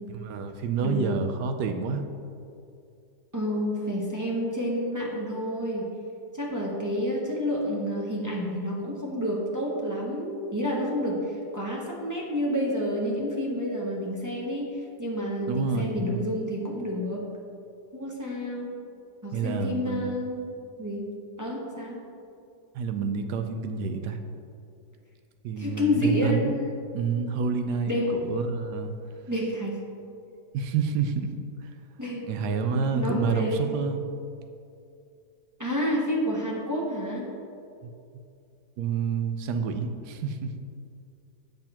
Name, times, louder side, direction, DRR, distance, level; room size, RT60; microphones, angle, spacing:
voice 1, 0.1-2.0 15.5-16.3 19.3-20.1 22.7-24.2 25.4-26.5 26.9-28.9 30.5-31.3 32.3-34.1 37.8-37.9 38.8-40.5, right 5 dB, 80° right, 7 dB, 1.1 m, -28 dB
voice 2, 0.8-1.2 3.3-5.9 6.3-17.3 17.9-18.7 19.2-20.5 20.8-21.1 21.4-22.0 25.6-26.5 27.9-28.1 29.3-29.8 32.0-32.3 32.7-33.7 35.6-37.4, equal, 25° right, -4 dB, 0.4 m, -29 dB
7.9 x 6.6 x 2.9 m, 2.5 s
omnidirectional pair, 1.8 m